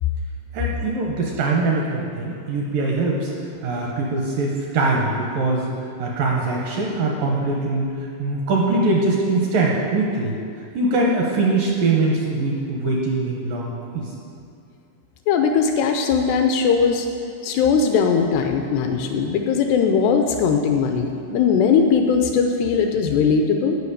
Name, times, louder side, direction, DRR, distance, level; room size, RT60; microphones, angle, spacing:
voice 1, 0.5-3.3 3.6-5.7 6.0-7.9 8.2-10.4 10.7-14.1, right 3 dB, 75° right, -2 dB, 2.1 m, -22 dB
voice 2, 15.3-17.1 17.4-23.8, left 6 dB, 80° left, 4 dB, 2.5 m, -19 dB
13.0 x 5.7 x 8.5 m, 2.6 s
omnidirectional pair, 5.4 m